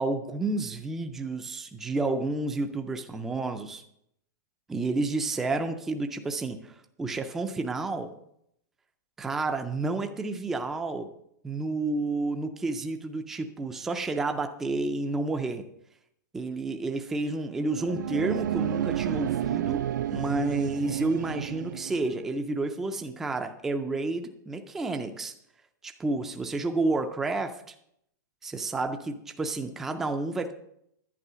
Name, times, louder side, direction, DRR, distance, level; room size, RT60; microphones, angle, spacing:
voice 1, 0.0-3.8 4.7-8.1 9.2-11.1 11.4-15.7 16.3-25.3 25.8-27.7 28.4-30.5, right 2 dB, 5° right, 6 dB, 0.3 m, -30 dB
sound 1, 17.6-22.3, right 11 dB, 70° right, 0.4 m, -31 dB
11.0 x 9.1 x 5.5 m, 0.74 s
supercardioid pair, 180°, 10 cm